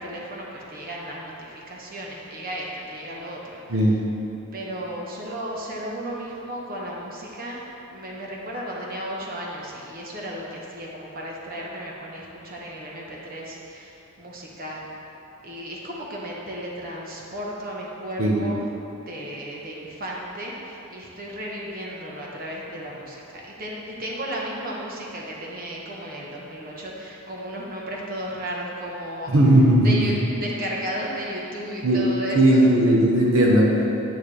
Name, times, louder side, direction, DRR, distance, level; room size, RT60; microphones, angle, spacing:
voice 1, 0.0-3.6 4.5-7.6 7.9-14.9 15.4-18.6 19.1-29.3 29.8-32.7, equal, 40° right, -3 dB, 1.2 m, -34 dB
voice 2, 29.3-30.0 31.8-32.0 32.3-33.9, right 1 dB, 70° right, -3 dB, 1.0 m, -17 dB
9.2 x 9.1 x 3.3 m, 3.0 s
head